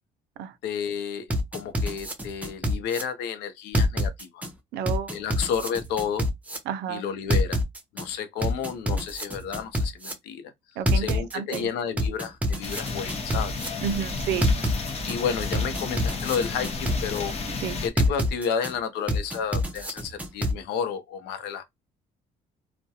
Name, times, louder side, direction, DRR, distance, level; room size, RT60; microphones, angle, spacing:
voice 1, 0.6-4.4 5.1-6.3 6.9-7.6 7.9-10.5 10.9-13.5 15.1-17.4 17.8-21.6, left 7 dB, 85° left, 0.6 m, -31 dB
sound 1, 1.3-3.0 3.7-4.5 4.9-6.6 7.3-8.0 8.4-10.1 10.9-11.6 12.0-13.7 14.4-15.1 15.5-17.2 18.0-18.7 19.1-20.5, left 1 dB, 10° right, 0.5 m, -26 dB
voice 2, 4.7-5.2 6.7-7.0 8.9-9.0 10.8-11.7 13.8-14.5 17.6-17.8, right 8 dB, 80° right, 0.4 m, -31 dB
sound 2, 12.6-17.9, left 3 dB, 40° left, 0.7 m, -32 dB
2.3 x 2.1 x 2.7 m
cardioid pair, 110°, 17 cm